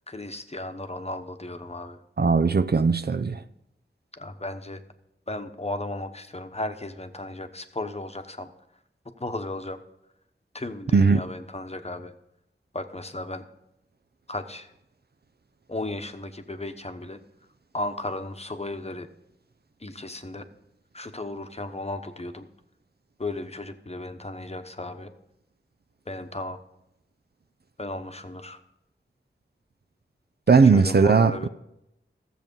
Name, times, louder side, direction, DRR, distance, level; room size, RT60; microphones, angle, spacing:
voice 1, 0.1-2.0 4.1-4.8 5.3-8.5 9.2-9.8 10.5-12.1 12.7-13.4 14.3-14.7 15.7-17.2 17.7-19.1 19.8-20.5 20.9-22.5 23.2-25.1 26.1-26.6 27.8-28.6 30.5-31.5, left 2 dB, 30° left, 1.0 m, -35 dB
voice 2, 2.2-3.4 10.9-11.2 30.5-31.5, right 4 dB, 50° right, 0.5 m, -18 dB
14.5 x 7.5 x 5.4 m
wide cardioid pair, 50°, 20 cm